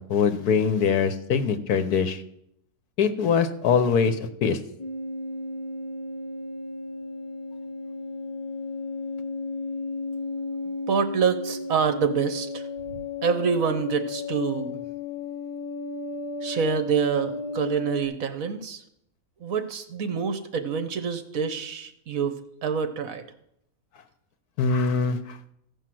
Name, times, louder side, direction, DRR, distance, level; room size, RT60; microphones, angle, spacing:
voice 1, 0.0-2.2 3.0-4.6 24.6-25.4, left 6 dB, 80° left, 10 dB, 1.5 m, -23 dB
sound 1, 4.8-18.0, left 3 dB, 25° left, 2.3 m, -34 dB
voice 2, 10.9-12.7 12.9-14.8 16.4-18.8 19.4-23.2, right 6 dB, 65° right, 9 dB, 1.4 m, -26 dB
15.0 x 5.4 x 7.6 m, 0.77 s
omnidirectional pair, 1.6 m